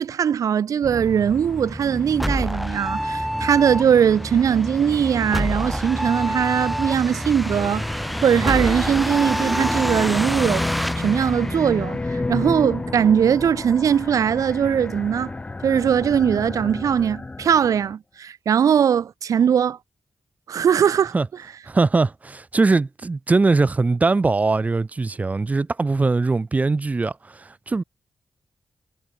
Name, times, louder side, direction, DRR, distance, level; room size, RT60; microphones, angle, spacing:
voice 1, 0.0-10.7 11.0-15.3 15.6-19.8 20.5-21.1, right 8 dB, 75° right, 1.4 m, -20 dB
sound 1, 0.8-12.3, equal, ahead, 1.1 m, -27 dB
sound 2, 7.4-17.9, left 3 dB, 20° left, 2.7 m, -31 dB
voice 2, 21.7-27.8, right 3 dB, 25° right, 2.0 m, -21 dB
wide cardioid pair, 145°, 6 cm